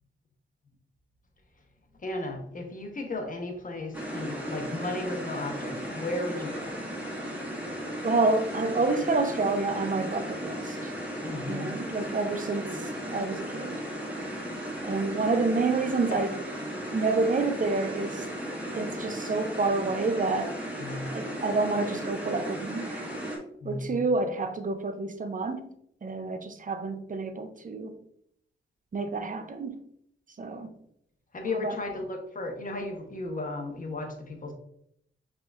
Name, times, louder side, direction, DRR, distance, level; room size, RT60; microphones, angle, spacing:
voice 1, 2.0-6.7 11.2-11.7 20.8-21.1 23.6-24.0 31.3-34.5, left 2 dB, 40° left, 1.0 m, -35 dB
sound 1, 3.9-23.4, equal, 5° right, 1.6 m, -36 dB
voice 2, 8.0-10.9 11.5-13.8 14.8-16.4 16.8-18.3 18.7-20.5 21.1-23.0 23.6-25.7 26.0-27.9 28.9-29.8 30.4-30.7 31.5-31.8, right 3 dB, 40° right, 0.6 m, -28 dB
5.8 x 3.6 x 2.5 m
cardioid pair, 75°, 21 cm